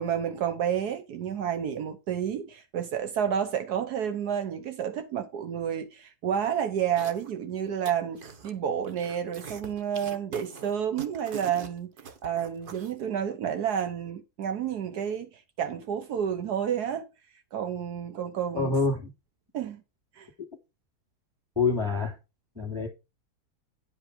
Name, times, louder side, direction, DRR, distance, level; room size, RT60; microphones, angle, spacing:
voice 1, 0.0-11.9 12.2-17.1 17.5-18.7 19.5-19.8 20.2-20.3, right 8 dB, 80° right, 1.4 m, -30 dB
sound 1, 7.0-7.4 7.7-8.5 8.8-12.9, right 6 dB, 40° right, 1.0 m, -43 dB
voice 2, 18.5-19.1 21.6-22.2 22.5-22.9, left 4 dB, 15° right, 2.7 m, -26 dB
9.8 x 5.4 x 5.0 m
omnidirectional pair, 1.7 m